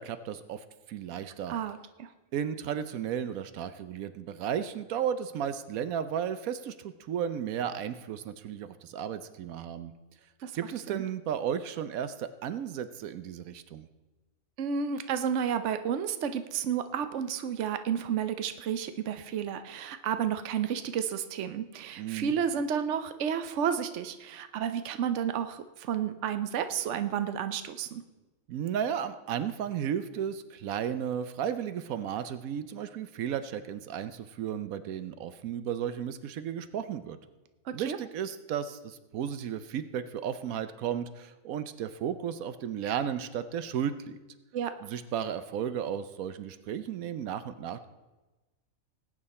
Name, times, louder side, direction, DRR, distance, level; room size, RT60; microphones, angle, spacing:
voice 1, 0.0-1.6 2.3-9.9 10.5-13.9 22.0-22.3 28.5-37.2 37.7-44.2 44.8-47.9, right 9 dB, 85° right, 12 dB, 1.1 m, -34 dB
voice 2, 1.5-2.1 10.4-10.5 10.9-11.0 14.6-28.0 37.7-38.0 44.5-44.7, right 8 dB, 65° right, 10 dB, 1.0 m, -31 dB
19.0 x 8.7 x 4.2 m, 1.1 s
omnidirectional pair, 1.4 m